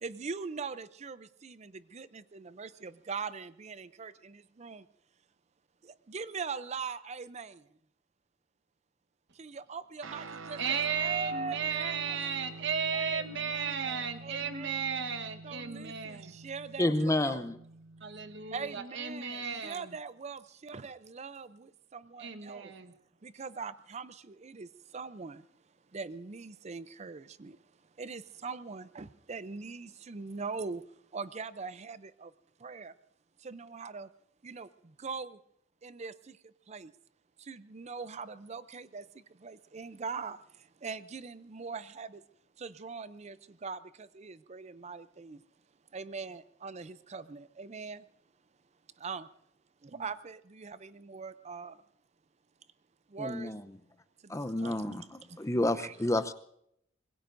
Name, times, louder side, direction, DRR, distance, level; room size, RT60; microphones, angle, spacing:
voice 1, 0.0-4.9 5.8-7.7 9.3-12.3 12.9-14.8 15.4-17.4 18.5-22.7 23.2-25.5 25.9-27.6 28.0-32.3 32.6-32.9 33.4-34.1 34.4-35.4 35.8-36.9 37.4-42.2 42.6-45.4 45.9-48.1 49.0-49.3 49.8-51.8 53.1-53.5 54.2-55.5 55.8-55.9, right 5 dB, 35° right, 15 dB, 0.5 m, -42 dB
Guitar, 10.0-18.8, right 3 dB, 80° right, 0.7 m, -48 dB
voice 2, 10.6-16.4 18.0-19.9 22.2-22.9, right 6 dB, 60° right, 8 dB, 1.2 m, -34 dB
voice 3, 16.8-17.6 53.2-53.6 54.3-56.3, left 1 dB, 15° left, 11 dB, 0.6 m, -30 dB
25.0 x 21.0 x 2.6 m, 0.73 s
head